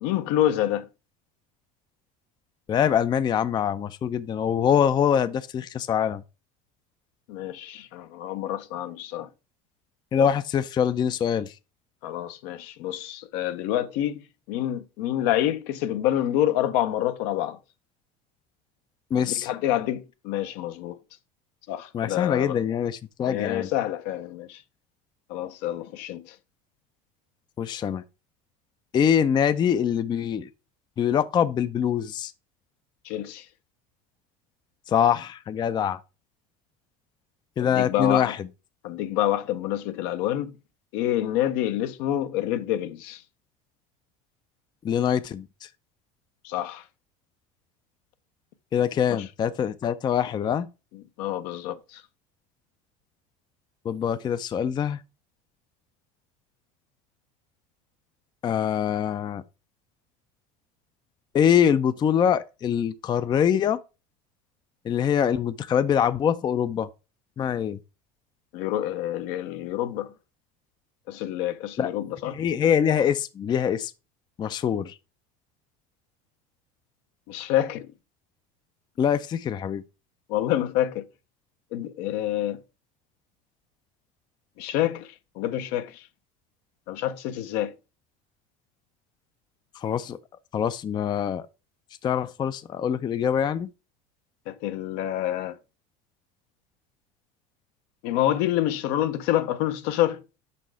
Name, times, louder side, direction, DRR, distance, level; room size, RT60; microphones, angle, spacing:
voice 1, 0.0-0.9 7.3-9.3 12.0-14.2 14.5-17.6 19.2-21.0 21.7-22.6 23.2-24.6 25.3-26.4 33.0-33.5 37.6-38.3 38.8-40.6 40.9-43.2 46.4-46.8 49.1-49.2 51.2-52.0 68.5-70.1 71.1-72.4 77.3-77.9 80.3-81.1 81.7-82.6 84.6-86.1 86.9-87.7 94.5-95.6 98.0-100.2, left 12 dB, 70° left, 0.6 m, -27 dB
voice 2, 2.7-6.2 10.1-11.6 19.1-19.5 21.9-23.7 27.6-28.0 28.9-30.5 31.0-32.3 34.9-36.0 37.6-38.5 44.8-45.7 48.7-50.7 53.8-55.0 58.4-59.4 61.3-63.8 64.8-66.9 67.4-67.8 71.8-71.9 72.3-73.9 74.4-75.0 79.0-79.8 89.8-90.2 90.5-91.5 92.0-93.7, left 8 dB, 25° left, 0.3 m, -24 dB
5.3 x 4.2 x 4.5 m
supercardioid pair, 105°, 18 cm